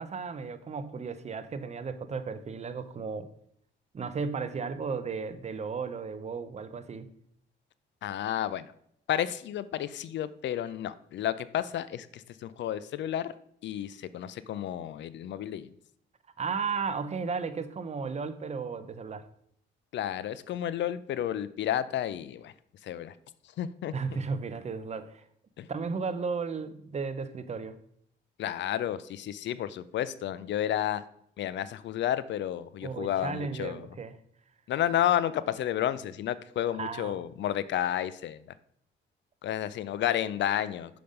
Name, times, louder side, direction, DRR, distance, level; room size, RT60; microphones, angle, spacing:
voice 1, 0.0-3.3 3.9-7.1 16.4-19.3 23.9-25.2 25.7-27.8 32.8-34.2 36.8-37.2, right 5 dB, 35° right, 11 dB, 0.7 m, -34 dB
voice 2, 8.0-8.7 9.1-13.3 13.6-15.7 19.9-22.5 22.8-23.1 23.6-23.9 25.6-25.7 28.4-31.0 31.4-33.8 34.7-38.4 39.4-41.0, left 11 dB, 65° left, 16 dB, 0.5 m, -31 dB
5.8 x 5.1 x 5.3 m, 0.69 s
cardioid pair, 90°, 20 cm